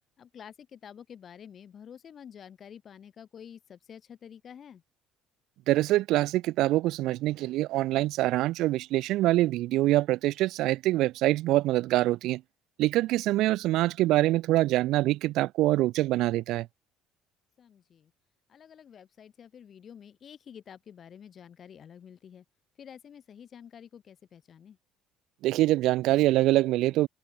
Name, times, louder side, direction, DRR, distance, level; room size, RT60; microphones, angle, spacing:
voice 1, 0.2-4.8 17.6-18.1 18.5-22.4 22.8-24.8, left 8 dB, 40° left, 7.0 m, -49 dB
voice 2, 5.7-12.4 12.8-16.7 25.4-27.1, right 16 dB, 70° right, 0.4 m, -25 dB
open air
cardioid pair, 110°, 0 cm